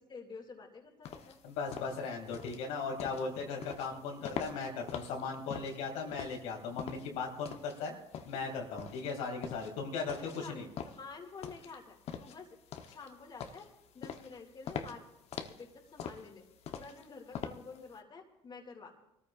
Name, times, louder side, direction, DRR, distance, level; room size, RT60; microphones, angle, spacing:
voice 1, 0.0-1.4 10.2-10.6 10.8-12.5 12.8-13.7 13.9-15.0 15.5-16.4 16.7-18.9, left 4 dB, 40° left, 1 dB, 2.4 m, -49 dB
sound 1, 1.0-17.9, left 8 dB, 60° left, 1.1 m, -45 dB
voice 2, 1.4-7.9 8.2-10.7, left 4 dB, 90° left, -1 dB, 2.8 m, -37 dB
24.5 x 14.0 x 2.6 m, 0.85 s
supercardioid pair, 90°, 12 cm